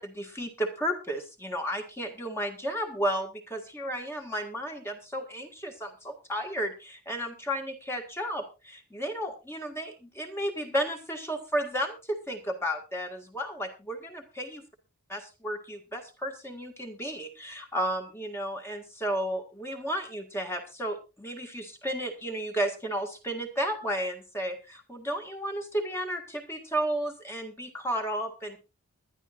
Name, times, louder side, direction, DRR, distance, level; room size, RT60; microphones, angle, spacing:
voice 1, 0.0-14.6 15.1-28.6, equal, 10° left, 3 dB, 1.8 m, -33 dB
21.5 x 11.5 x 2.5 m, 0.28 s
head